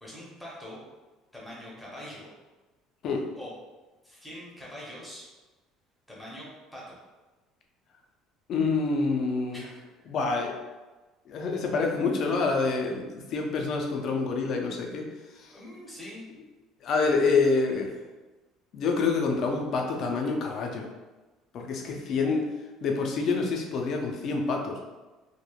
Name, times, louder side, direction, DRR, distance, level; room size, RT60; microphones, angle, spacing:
voice 1, 0.0-0.8 1.3-2.3 3.4-3.5 4.0-5.3 6.1-7.0 9.5-9.8 15.5-16.2 21.9-22.3, left 1 dB, ahead, -6 dB, 0.6 m, -43 dB
voice 2, 8.5-9.6 10.1-10.6 11.3-15.6 16.8-17.9 18.7-20.9 21.5-22.5 22.8-24.8, left 4 dB, 40° left, 2 dB, 0.3 m, -27 dB
3.0 x 2.0 x 2.3 m, 1.2 s
cardioid pair, 170°, 0 cm